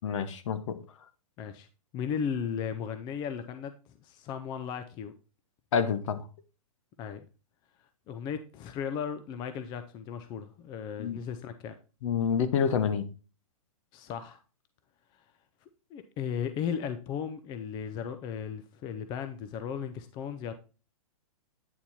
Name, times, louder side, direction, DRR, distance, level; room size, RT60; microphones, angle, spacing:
voice 1, 0.0-0.8 5.7-6.2 11.0-11.2 12.0-13.1, left 7 dB, 55° left, 1.1 m, -28 dB
voice 2, 1.9-3.7 4.0-5.1 7.0-7.3 8.1-11.7 13.9-14.4 15.9-20.5, left 7 dB, 25° left, 0.5 m, -36 dB
9.0 x 4.3 x 4.1 m
hypercardioid pair, 135°, 18 cm